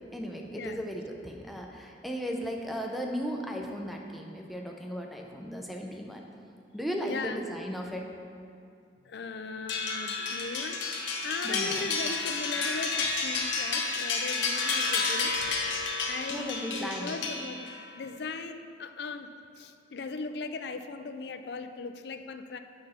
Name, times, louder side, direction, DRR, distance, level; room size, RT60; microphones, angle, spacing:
voice 1, 0.1-6.3 6.7-8.1 11.4-11.9 16.3-17.1, equal, ahead, 1 dB, 0.6 m, -36 dB
voice 2, 7.0-7.4 9.1-15.4 16.1-17.7 17.9-22.6, left 4 dB, 60° left, 8 dB, 0.4 m, -38 dB
sound 1, 9.7-17.9, left 4 dB, 85° left, 1.1 m, -31 dB
8.6 x 6.3 x 4.3 m, 2.4 s
head